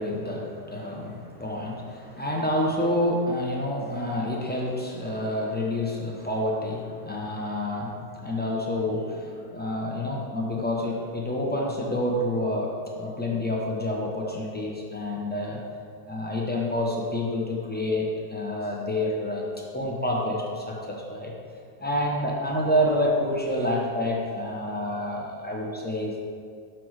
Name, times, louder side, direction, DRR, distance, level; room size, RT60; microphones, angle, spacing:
voice 1, 0.0-15.6 16.1-19.4 19.7-21.3 21.8-26.2, left 1 dB, 15° left, -2 dB, 0.4 m, -28 dB
5.9 x 4.7 x 6.3 m, 2.2 s
omnidirectional pair, 1.8 m